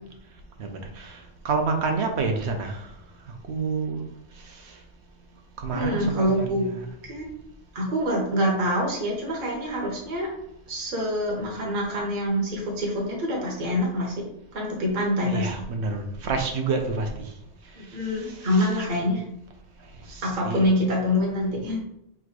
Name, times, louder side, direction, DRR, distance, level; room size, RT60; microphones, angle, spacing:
voice 1, 0.6-1.2 1.4-2.9 3.5-4.0 5.6-6.9 15.2-17.1 18.2-18.9 20.1-20.6, right 4 dB, 70° right, 4 dB, 1.0 m, -28 dB
voice 2, 5.7-6.7 7.0-7.3 7.7-10.3 10.7-14.2 14.5-15.5 17.7-19.2 20.2-21.8, equal, 50° right, -2 dB, 1.1 m, -25 dB
3.6 x 2.5 x 4.6 m, 0.80 s
omnidirectional pair, 1.2 m